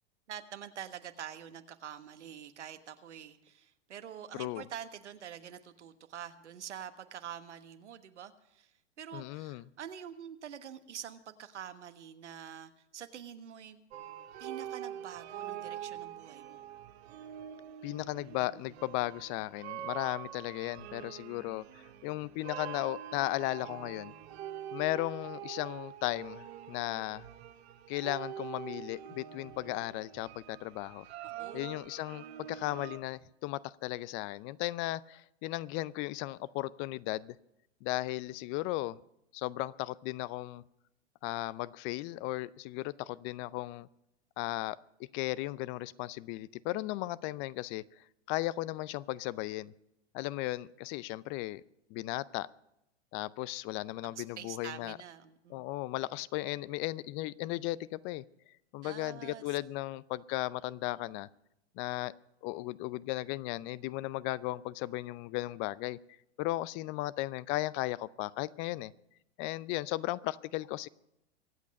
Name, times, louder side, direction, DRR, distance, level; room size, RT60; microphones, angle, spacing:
voice 1, 0.3-13.8 14.4-16.6 31.4-31.7 54.1-55.6 58.8-59.6, right 9 dB, 80° right, 9 dB, 1.4 m, -46 dB
voice 2, 4.3-4.6 9.1-9.6 17.8-24.1 24.7-27.2 27.9-31.1 31.5-37.4 37.8-39.0 39.3-40.6 41.2-43.9 44.4-44.8 45.1-49.7 50.1-51.6 51.9-52.5 53.1-55.0 55.5-58.2 58.7-61.3 61.8-62.1 62.4-66.0 66.4-68.9 69.4-70.9, left 18 dB, 35° left, 20 dB, 0.5 m, -36 dB
sound 1, 13.9-33.0, right 10 dB, 65° right, 1.8 m, -45 dB
24.0 x 8.4 x 5.3 m, 0.82 s
hypercardioid pair, 105°, 35 cm